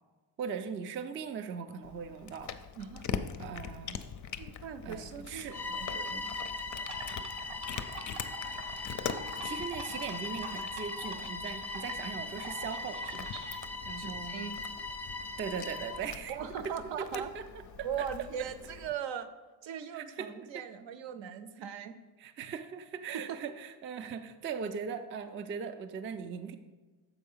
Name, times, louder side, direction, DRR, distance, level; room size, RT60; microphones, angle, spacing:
voice 1, 0.4-2.6 3.4-4.0 4.8-5.6 9.4-14.4 15.4-16.4 16.6-17.4 17.8-18.1 19.9-20.6 22.2-26.5, right 6 dB, 30° right, 8 dB, 0.3 m, -39 dB
Cat, 1.8-18.9, left 7 dB, 40° left, 0.4 m, -43 dB
voice 2, 4.4-6.5 14.0-14.6 16.3-17.3 17.8-19.3 19.6-22.0 23.1-23.4, right 8 dB, 65° right, 11 dB, 0.7 m, -39 dB
Bowed string instrument, 5.5-16.1, left 3 dB, 5° left, 0.7 m, -39 dB
sound 1, 6.8-13.6, right 4 dB, 90° right, 1.0 m, -46 dB
6.9 x 4.5 x 5.5 m, 1.3 s
cardioid pair, 115°, 48 cm